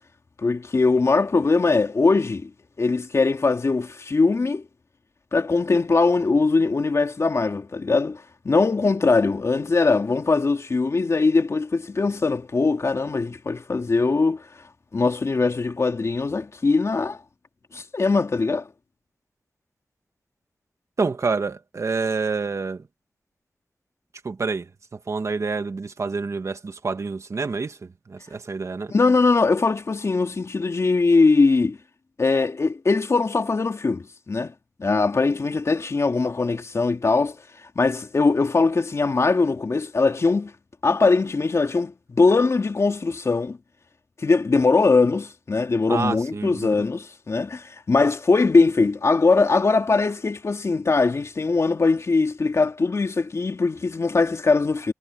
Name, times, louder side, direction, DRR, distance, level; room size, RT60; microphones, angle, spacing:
voice 1, 0.4-2.5 2.8-4.6 5.3-14.4 14.9-17.2 17.7-18.7 28.9-31.8 32.2-34.5 34.8-37.4 37.8-40.5 40.8-43.6 44.2-54.9, left 3 dB, 65° left, 2.7 m, -21 dB
voice 2, 21.0-22.8 24.2-24.7 25.1-28.9 45.9-46.7, right 4 dB, 65° right, 1.8 m, -27 dB
cardioid pair, 45°, 5 cm